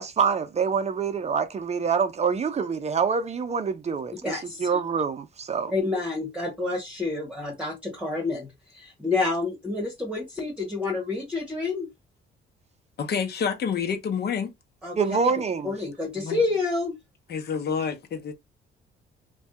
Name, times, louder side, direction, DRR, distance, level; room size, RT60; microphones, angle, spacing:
voice 1, 0.0-5.7 15.0-15.7, right 6 dB, 35° right, 0.5 m, -26 dB
voice 2, 4.2-4.8 5.7-11.9 14.8-15.0 15.6-17.0, left 3 dB, 5° right, 1.1 m, -29 dB
voice 3, 13.0-14.5 16.1-16.4 17.3-18.3, left 6 dB, 55° left, 0.8 m, -28 dB
2.6 x 2.3 x 3.5 m
cardioid pair, 90°, 20 cm